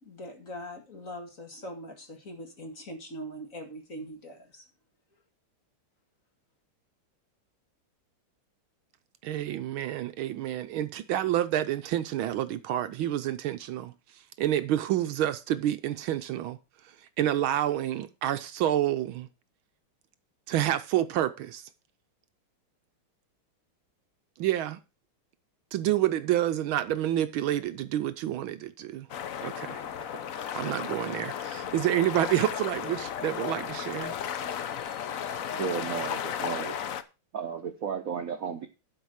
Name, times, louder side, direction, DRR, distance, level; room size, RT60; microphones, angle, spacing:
voice 1, 0.0-4.6, equal, 40° left, 2.4 m, -42 dB
voice 2, 9.2-13.9 14.4-16.6 17.2-19.3 20.5-21.7 24.4-24.8 25.7-29.1 29.4-29.8 30.3-34.1, right 12 dB, 75° right, 1.4 m, -28 dB
sound 1, 29.1-37.0, left 9 dB, 70° left, 0.8 m, -34 dB
voice 3, 35.5-36.8 37.3-38.7, right 7 dB, 55° right, 1.0 m, -33 dB
11.5 x 4.9 x 6.4 m
omnidirectional pair, 2.4 m